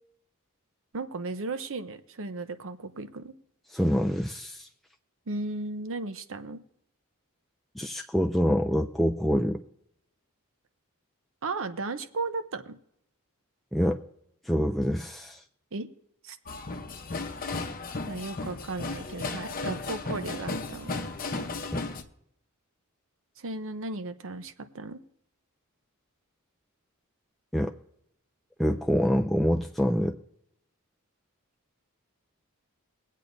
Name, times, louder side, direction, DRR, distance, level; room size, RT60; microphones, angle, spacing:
voice 1, 0.9-3.3 5.3-6.6 11.4-12.8 15.7-15.9 16.2-16.4 18.1-21.0 23.4-25.0, right 3 dB, 60° right, 10 dB, 0.8 m, -35 dB
voice 2, 3.7-4.7 7.8-9.6 13.7-14.0 14.4-15.4 21.7-21.8 27.5-27.7 28.6-30.2, equal, ahead, 2 dB, 0.4 m, -26 dB
sound 1, 16.5-22.0, left 3 dB, 40° left, 0.9 m, -35 dB
23.0 x 8.4 x 2.6 m, 0.74 s
head